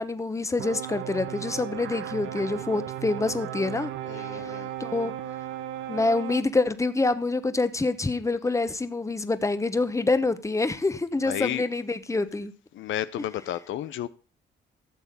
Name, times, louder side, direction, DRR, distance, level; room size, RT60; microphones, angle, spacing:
voice 1, 0.0-3.9 4.4-4.5 4.8-5.1 5.9-12.5, left 3 dB, 15° left, 1.1 m, -26 dB
sound 1, 0.6-6.4, right 11 dB, 85° right, 1.1 m, -35 dB
voice 2, 4.0-4.7 11.2-11.7 12.7-14.1, left 12 dB, 75° left, 0.6 m, -32 dB
14.0 x 7.1 x 5.3 m
cardioid pair, 90°, 20 cm